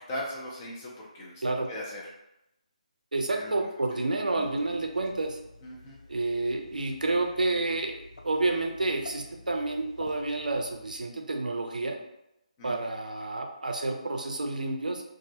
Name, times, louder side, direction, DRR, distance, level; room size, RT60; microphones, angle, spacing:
voice 1, 0.1-1.4 1.7-2.1 3.3-3.7 4.4-4.5 5.6-6.0 12.6-12.7, left 1 dB, 25° left, -4 dB, 0.6 m, -39 dB
voice 2, 3.1-5.4 6.1-12.0 12.6-15.0, right 2 dB, 80° right, 3 dB, 0.4 m, -29 dB
sound 1, 4.4-11.1, left 2 dB, 65° left, 0.4 m, -50 dB
2.3 x 2.1 x 2.7 m, 0.87 s
figure-of-eight pair, 150°, 4 cm